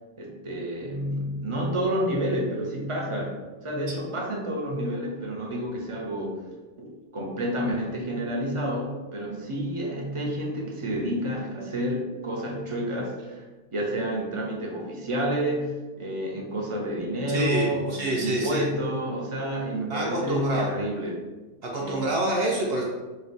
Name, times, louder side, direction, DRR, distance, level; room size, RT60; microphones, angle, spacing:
voice 1, 0.2-6.4 6.8-13.4 13.7-21.3 21.8-22.1, equal, 35° right, -1 dB, 0.5 m, -29 dB
voice 2, 17.3-18.6 19.9-20.7 21.6-22.8, right 1 dB, 60° right, -2 dB, 0.8 m, -27 dB
4.2 x 2.3 x 3.9 m, 1.2 s
omnidirectional pair, 1.2 m